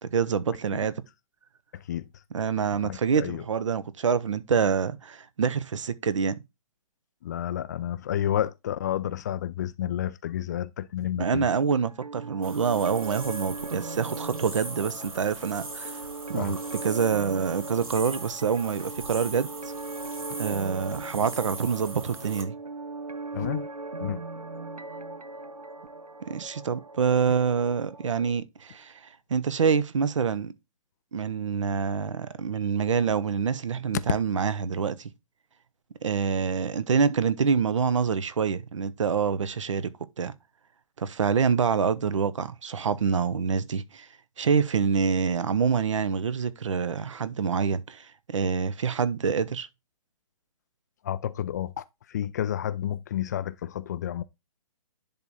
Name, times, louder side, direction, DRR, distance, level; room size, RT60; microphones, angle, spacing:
voice 1, 0.1-0.9 2.3-6.3 11.2-16.0 16.3-19.7 20.4-22.5 26.3-30.5 31.1-35.1 36.0-39.9 40.2-40.3 41.0-44.1 44.4-49.7, right 6 dB, 55° right, 0.8 m, -26 dB
voice 2, 2.8-3.4 7.2-11.5 16.3-16.6 23.3-23.7 24.0-24.2 51.0-51.8 52.1-54.2, left 11 dB, 30° left, 0.4 m, -30 dB
sound 1, 11.9-28.3, right 3 dB, 90° right, 0.7 m, -39 dB
sound 2, 12.4-22.4, right 2 dB, 70° right, 2.2 m, -40 dB
10.5 x 3.6 x 4.1 m
figure-of-eight pair, 130°, 19 cm